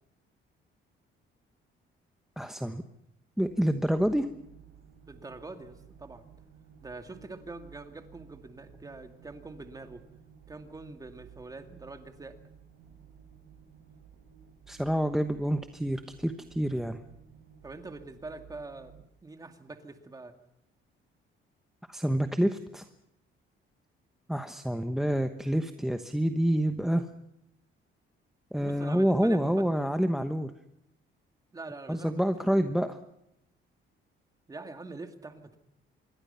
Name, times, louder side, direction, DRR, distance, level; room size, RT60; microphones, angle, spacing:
voice 1, 2.4-2.8 3.4-4.3 14.7-17.0 21.9-22.8 24.3-27.1 28.5-30.5 31.9-33.0, equal, ahead, 8 dB, 1.1 m, -27 dB
sound 1, 3.4-19.1, right 8 dB, 65° right, 5.3 m, -55 dB
voice 2, 5.1-6.2 6.8-10.1 10.5-12.4 17.6-19.0 19.2-20.4 28.6-29.6 31.5-32.2 32.5-32.7 34.5-35.6, right 3 dB, 15° right, 7 dB, 2.3 m, -44 dB
26.5 x 23.0 x 5.7 m, 0.79 s
cardioid pair, 160°, 21 cm